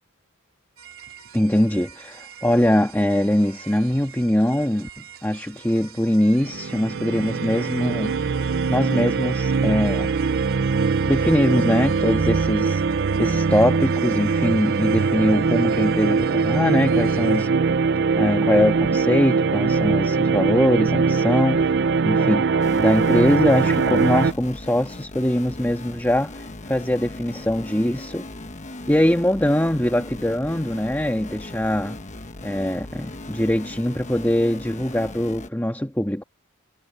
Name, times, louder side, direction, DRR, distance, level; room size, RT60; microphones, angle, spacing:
sound 1, 0.8-17.5, right 8 dB, 70° right, 3.3 m, -45 dB
voice 1, 1.3-4.9 5.2-8.1 8.7-10.1 11.1-12.8 13.2-17.5 18.2-28.3 28.9-32.0 32.4-36.2, left 1 dB, 10° left, 1.5 m, -22 dB
sound 2, 6.4-24.3, right 5 dB, 55° right, 0.5 m, -22 dB
sound 3, 22.6-35.5, left 2 dB, 35° left, 1.2 m, -38 dB
head